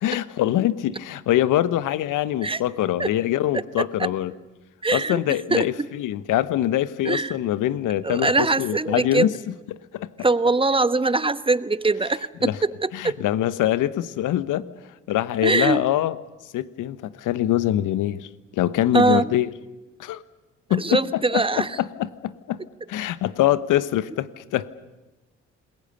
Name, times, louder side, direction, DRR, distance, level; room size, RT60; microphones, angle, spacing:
voice 1, 0.0-4.3 4.9-9.3 9.7-10.1 12.4-12.6 12.9-14.7 15.1-16.2 16.5-19.5 20.0-20.2 20.7-22.6 22.9-24.7, left 13 dB, 65° left, 15 dB, 1.1 m, -24 dB
voice 2, 3.5-4.1 4.8-5.2 5.5-5.9 7.0-7.3 8.0-9.3 10.2-13.2 15.4-15.8 18.9-19.3 20.8-21.7, right 3 dB, 15° right, 14 dB, 1.1 m, -22 dB
27.5 x 21.5 x 6.8 m, 1.1 s
hypercardioid pair, 45°, 34 cm